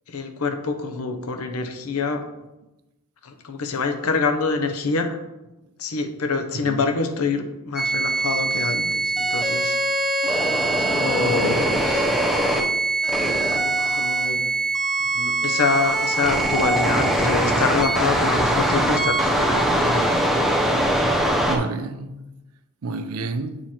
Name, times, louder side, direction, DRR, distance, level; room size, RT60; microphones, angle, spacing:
voice 1, 0.1-2.2 3.2-5.2 5.8-9.8 10.7-12.1 13.5-14.4 15.0-20.3, left 4 dB, 70° left, 0.7 m, -26 dB
sound 1, 7.8-21.6, right 1 dB, ahead, 0.6 m, -22 dB
voice 2, 11.2-11.6 21.5-22.2 22.8-23.6, right 3 dB, 70° right, 0.5 m, -29 dB
8.6 x 3.0 x 4.3 m
head